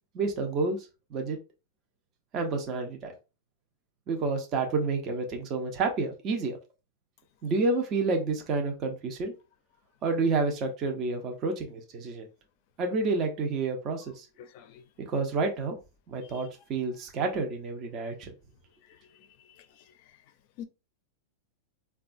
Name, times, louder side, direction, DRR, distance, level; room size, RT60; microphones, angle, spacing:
voice 1, 0.1-1.4 2.3-3.1 4.1-6.6 7.4-9.3 10.0-12.3 12.8-14.3 15.0-15.8 16.1-18.3, right 3 dB, 30° right, 0.6 m, -29 dB
voice 2, 14.4-14.8 19.6-19.7 20.6-20.7, left 9 dB, 45° left, 0.5 m, -44 dB
4.0 x 2.2 x 2.5 m
supercardioid pair, 160°, 0 cm